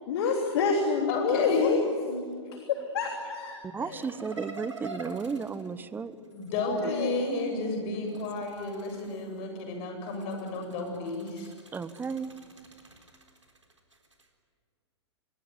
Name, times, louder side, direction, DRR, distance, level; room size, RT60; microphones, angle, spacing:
voice 1, 0.1-1.8 2.7-4.0 6.1-6.2 6.6-7.1, left 5 dB, 55° left, 3 dB, 3.3 m, -28 dB
voice 2, 1.1-2.2 3.7-3.8 6.3-11.5, left 3 dB, 40° left, 4 dB, 7.9 m, -32 dB
voice 3, 3.6-6.1 6.7-6.9 7.3-7.4 11.7-12.3, right 5 dB, 15° right, 15 dB, 1.0 m, -34 dB
sound 1, 3.9-6.7 7.9-9.5 10.0-14.3, right 3 dB, 90° right, 3.8 m, -47 dB
25.0 x 22.5 x 9.7 m, 2.1 s
figure-of-eight pair, 105°, 15 cm